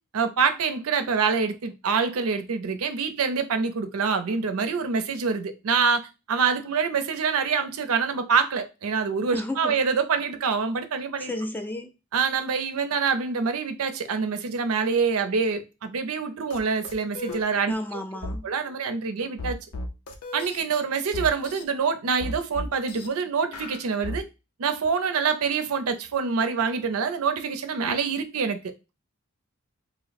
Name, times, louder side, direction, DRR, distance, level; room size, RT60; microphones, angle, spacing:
voice 1, 0.1-11.3 12.1-17.7 18.4-19.6 20.3-24.2 24.6-28.6, right 5 dB, 85° right, 0.5 m, -26 dB
voice 2, 9.3-9.8 11.2-11.9 17.7-18.4, left 1 dB, 10° left, 0.3 m, -32 dB
sound 1, 16.5-16.6 16.8-17.4 18.2-18.4 19.4-20.6 21.1-21.6 22.2-23.1 23.5-24.2, left 1 dB, 85° left, 0.6 m, -34 dB
2.7 x 2.0 x 4.0 m
head